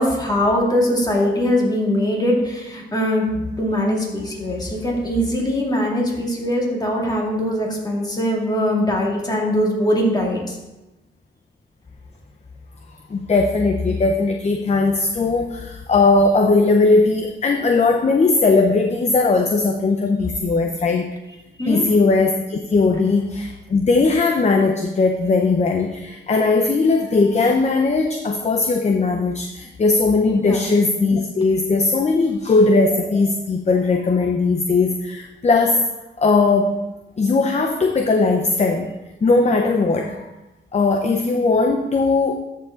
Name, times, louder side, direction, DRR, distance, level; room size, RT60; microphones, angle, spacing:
voice 1, 0.0-3.3 3.6-10.6 21.6-22.0 30.4-30.7, equal, 20° left, -2 dB, 2.3 m, -21 dB
voice 2, 13.1-21.0 21.7-35.8 36.2-36.8 37.2-38.9 39.2-40.2 40.7-42.3, left 3 dB, 35° left, 4 dB, 0.7 m, -18 dB
13.0 x 4.8 x 3.8 m, 1.0 s
cardioid pair, 95°, 20 cm